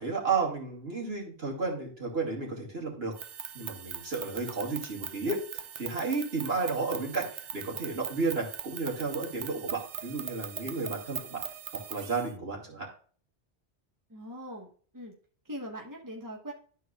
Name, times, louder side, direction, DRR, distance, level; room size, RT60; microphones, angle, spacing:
voice 1, 0.0-3.1 3.5-11.4 11.9-12.9, right 4 dB, 60° right, -2 dB, 2.6 m, -32 dB
sound 1, 3.1-12.3, right 9 dB, 85° right, 0.9 m, -41 dB
voice 2, 14.1-15.1 15.4-16.5, equal, 15° right, 0 dB, 1.4 m, -41 dB
12.0 x 4.5 x 2.5 m, 0.43 s
omnidirectional pair, 1.2 m